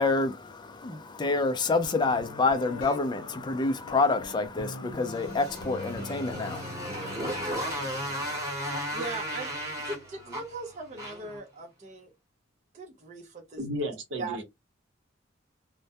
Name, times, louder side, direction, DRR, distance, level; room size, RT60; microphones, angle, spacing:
voice 1, 0.0-8.4, left 3 dB, 25° left, 0.4 m, -28 dB
Guitar, 1.8-11.3, left 2 dB, 90° left, 0.7 m, -44 dB
Motorcycle, 5.1-11.4, equal, 20° right, 0.9 m, -35 dB
voice 2, 8.6-9.5 9.8-12.1 12.7-13.6 14.2-14.4, right 3 dB, 35° right, 0.5 m, -39 dB
voice 3, 13.6-14.4, equal, 70° right, 0.8 m, -33 dB
2.2 x 2.1 x 2.7 m
head